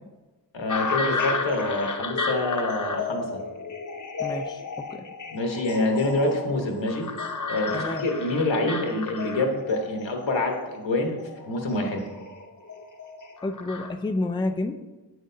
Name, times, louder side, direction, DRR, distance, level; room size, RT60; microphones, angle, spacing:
voice 1, 0.5-3.4 5.3-7.1 7.5-12.0, left 2 dB, 85° left, 2 dB, 1.2 m, -26 dB
sound 1, 0.7-13.9, left 4 dB, 45° left, 0.8 m, -32 dB
voice 2, 4.2-5.0 7.7-8.0 13.4-14.8, left 2 dB, 10° left, 8 dB, 0.3 m, -30 dB
8.8 x 6.3 x 2.7 m, 1.1 s
wide cardioid pair, 60°, 44 cm